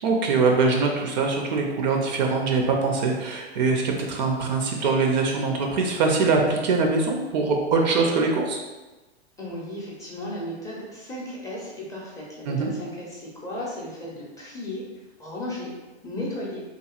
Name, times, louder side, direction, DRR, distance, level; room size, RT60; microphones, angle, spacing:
voice 1, 0.0-8.6 12.5-12.7, right 4 dB, 45° right, 1 dB, 0.4 m, -23 dB
voice 2, 9.4-14.8 15.2-15.7 16.0-16.6, left 1 dB, 10° left, -5 dB, 0.5 m, -35 dB
2.9 x 2.5 x 2.3 m, 1.1 s
hypercardioid pair, 110°, 33 cm